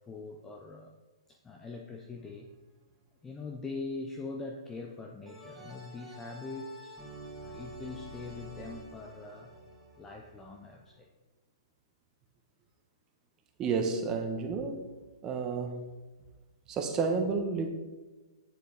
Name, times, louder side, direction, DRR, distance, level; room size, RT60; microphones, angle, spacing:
voice 1, 0.1-0.9 1.3-2.5 3.2-7.0 7.4-9.5 10.0-11.1, left 3 dB, 15° left, 2 dB, 0.8 m, -42 dB
sound 1, 2.2-2.7 5.3-11.0, right 1 dB, 5° right, 2.1 m, -48 dB
voice 2, 13.6-14.9 15.2-15.8 16.7-17.7, right 4 dB, 20° right, 5 dB, 1.3 m, -31 dB
9.9 x 7.4 x 4.1 m, 1.2 s
hypercardioid pair, 135°, 3 cm